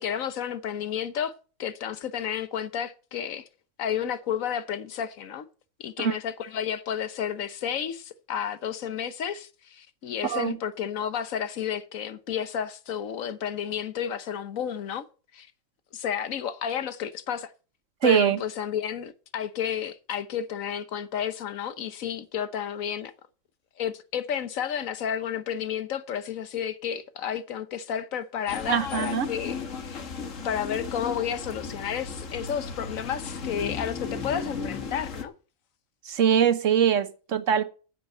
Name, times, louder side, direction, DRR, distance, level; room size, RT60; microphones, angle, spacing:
voice 1, 0.0-1.3 1.6-3.5 3.8-5.5 5.8-15.0 15.3-15.5 15.9-17.5 18.0-23.1 23.8-30.1 30.4-35.3, left 8 dB, 85° left, 1.4 m, -31 dB
voice 2, 10.2-10.6 18.0-18.4 28.7-29.3 36.0-37.6, right 8 dB, 70° right, 1.4 m, -23 dB
sound 1, 28.5-35.2, left 5 dB, 70° left, 1.8 m, -35 dB
9.6 x 7.8 x 7.6 m
omnidirectional pair, 1.4 m